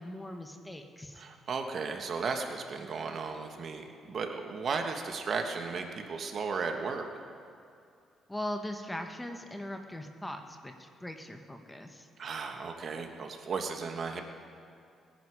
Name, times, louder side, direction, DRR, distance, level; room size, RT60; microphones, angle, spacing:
voice 1, 0.0-1.2 8.3-12.1, left 1 dB, 10° left, 5 dB, 1.2 m, -40 dB
voice 2, 1.1-7.1 12.2-14.2, right 4 dB, 55° right, 4 dB, 1.4 m, -35 dB
20.0 x 10.5 x 4.8 m, 2.4 s
cardioid pair, 90°, 0 cm